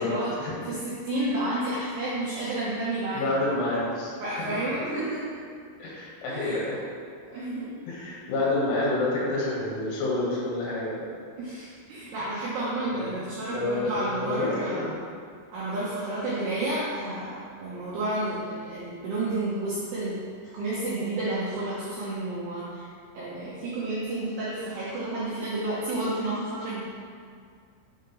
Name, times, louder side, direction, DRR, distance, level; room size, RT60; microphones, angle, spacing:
voice 1, 0.0-0.3 0.6-3.4 4.2-5.4 6.3-6.7 7.3-7.8 11.4-15.0 15.5-20.2 20.5-22.9 23.1-26.8, right 2 dB, 75° right, -9 dB, 2.4 m, -31 dB
voice 2, 3.1-4.1 4.5-4.6 5.8-6.8 7.9-11.1 12.9-13.2 13.5-14.9, left 2 dB, 75° left, -6 dB, 3.9 m, -28 dB
8.0 x 3.8 x 3.9 m, 2.2 s
omnidirectional pair, 5.8 m